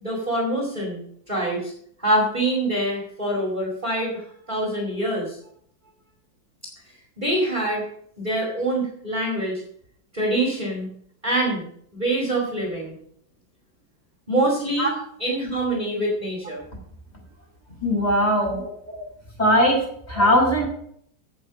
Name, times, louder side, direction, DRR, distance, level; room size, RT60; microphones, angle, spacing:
voice 1, 0.0-1.0 1.3-1.7 2.0-5.4 6.9-7.9 8.2-9.6 10.1-10.9 11.2-11.7 11.9-12.9 14.3-14.9 15.2-16.6 18.5-18.7 20.1-20.3, right 1 dB, 25° right, -2 dB, 2.5 m, -25 dB
voice 2, 17.8-18.6 19.4-19.8 20.1-20.6, equal, 20° left, -3 dB, 6.0 m, -19 dB
16.5 x 5.6 x 5.3 m, 0.66 s
omnidirectional pair, 2.0 m